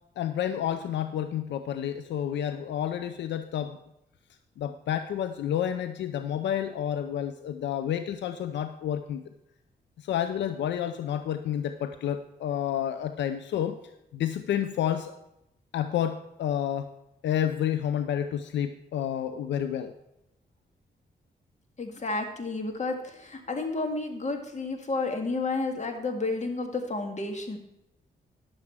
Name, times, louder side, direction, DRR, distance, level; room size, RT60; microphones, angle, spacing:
voice 1, 0.2-3.8 4.6-9.2 10.0-13.8 14.1-15.1 15.7-16.9 17.2-19.9, left 10 dB, 85° left, 10 dB, 0.5 m, -30 dB
voice 2, 21.8-27.6, left 3 dB, 40° left, 4 dB, 1.9 m, -31 dB
10.5 x 7.5 x 4.7 m, 0.86 s
cardioid pair, 65°, 18 cm